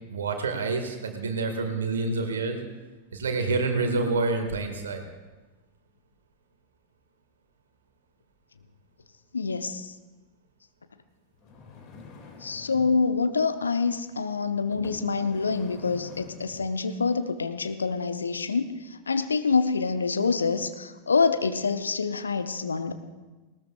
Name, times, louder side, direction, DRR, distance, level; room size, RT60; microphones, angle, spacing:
voice 1, 0.1-2.6 3.1-5.0, right 3 dB, 65° right, 5 dB, 1.9 m, -27 dB
voice 2, 9.3-9.9 12.4-22.9, left 4 dB, 75° left, 10 dB, 0.8 m, -26 dB
sound 1, 11.3-13.0 13.8-14.0 14.7-16.7 17.3-17.4, left 4 dB, 35° left, 2.4 m, -46 dB
19.0 x 18.5 x 2.4 m, 1.2 s
figure-of-eight pair, 90°, 0 cm